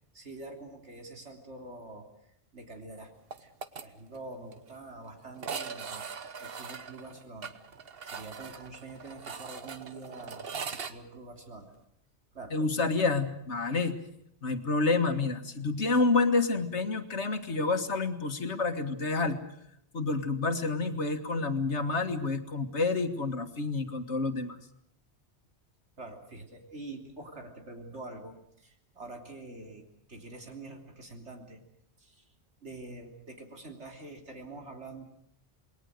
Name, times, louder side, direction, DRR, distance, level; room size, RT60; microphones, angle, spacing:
voice 1, 0.1-2.1 2.5-3.1 3.4-3.5 3.8-6.0 6.4-7.6 8.1-11.7 12.3-12.6 26.0-31.6 32.0-32.3 32.6-35.0, right 2 dB, 85° right, 3 dB, 3.7 m, -45 dB
sound 1, 3.3-3.8 4.1-4.2 4.5-4.6 5.4-10.9, right 6 dB, 60° right, 1.3 m, -40 dB
voice 2, 12.5-14.0 14.4-19.4 19.9-24.6, left 3 dB, 80° left, 7 dB, 2.0 m, -28 dB
28.0 x 21.0 x 6.6 m, 0.73 s
omnidirectional pair, 1.1 m